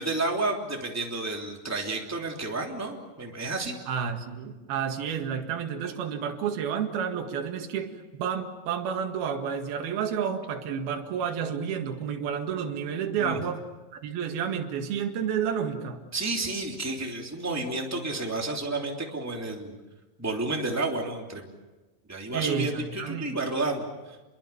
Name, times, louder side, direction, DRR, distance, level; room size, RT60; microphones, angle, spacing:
voice 1, 0.0-3.8 13.2-13.4 16.1-19.7 20.2-21.5 22.1-23.9, right 2 dB, 5° right, 1 dB, 2.4 m, -31 dB
voice 2, 3.9-13.6 13.9-16.0 22.3-23.3, right 7 dB, 65° right, 4 dB, 3.7 m, -30 dB
29.0 x 22.5 x 7.1 m, 1.2 s
omnidirectional pair, 4.8 m